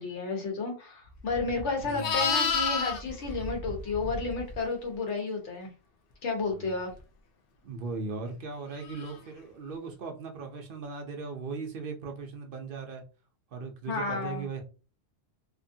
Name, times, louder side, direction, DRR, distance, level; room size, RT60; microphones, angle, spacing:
voice 1, 0.0-5.7 6.2-6.9 13.9-14.5, left 3 dB, 90° left, 1.3 m, -32 dB
Livestock farm animals working animals, 1.3-4.6 8.9-9.2, left 5 dB, 60° left, 0.7 m, -30 dB
voice 2, 1.8-2.3 6.5-6.8 7.6-13.0 13.5-14.6, right 4 dB, 60° right, 0.7 m, -38 dB
2.8 x 2.5 x 2.6 m
omnidirectional pair, 1.1 m